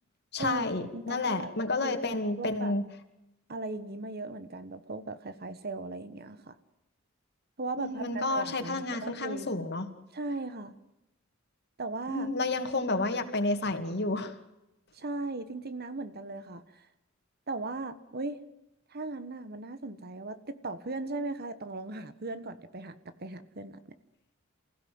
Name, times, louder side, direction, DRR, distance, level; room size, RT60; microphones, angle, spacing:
voice 1, 0.3-2.8 7.8-9.9 12.1-14.3, left 2 dB, 55° left, 6 dB, 2.6 m, -30 dB
voice 2, 0.9-1.5 1.8-2.0 2.4-2.7 3.5-6.5 7.6-9.5 10.1-10.7 11.8-12.3 14.9-16.9 17.5-18.4 18.9-23.8, right 2 dB, 50° right, 11 dB, 1.4 m, -37 dB
28.0 x 16.0 x 7.9 m, 0.92 s
head